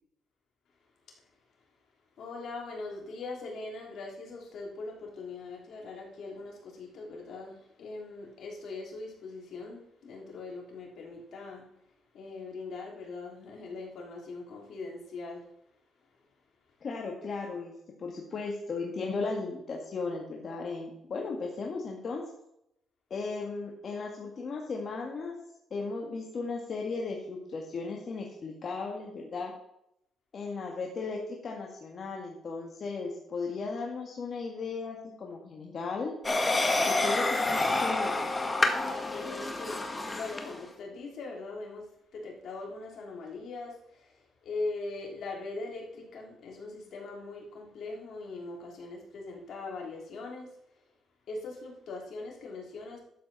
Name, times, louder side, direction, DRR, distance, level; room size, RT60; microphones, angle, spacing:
voice 1, 2.2-11.7 12.1-15.5 38.9-50.8 51.3-53.0, left 3 dB, 65° left, -1 dB, 3.3 m, -41 dB
voice 2, 16.8-17.7 18.0-22.2 23.1-25.4 25.7-29.5 30.3-36.1 36.8-38.2, left 4 dB, 50° left, -1 dB, 1.9 m, -36 dB
sound 1, 36.2-40.6, left 2 dB, 20° left, 1.7 m, -28 dB
12.0 x 7.8 x 4.2 m, 0.79 s
cardioid pair, 90°, 0 cm